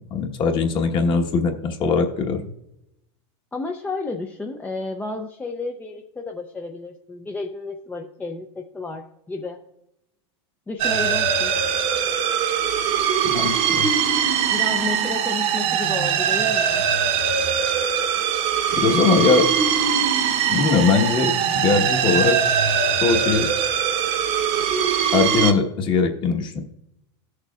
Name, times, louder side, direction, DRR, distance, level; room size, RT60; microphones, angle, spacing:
voice 1, 0.0-2.4 13.3-13.9 18.7-19.5 20.5-22.4 23.0-23.5 25.1-26.6, left 5 dB, 35° left, 3 dB, 1.2 m, -21 dB
voice 2, 3.5-9.6 10.7-11.5 14.5-16.8, left 3 dB, 10° left, 3 dB, 0.4 m, -32 dB
sound 1, 10.8-25.5, right 7 dB, 45° right, 0.9 m, -21 dB
17.5 x 6.6 x 2.4 m, 0.83 s
supercardioid pair, 135°, 15 cm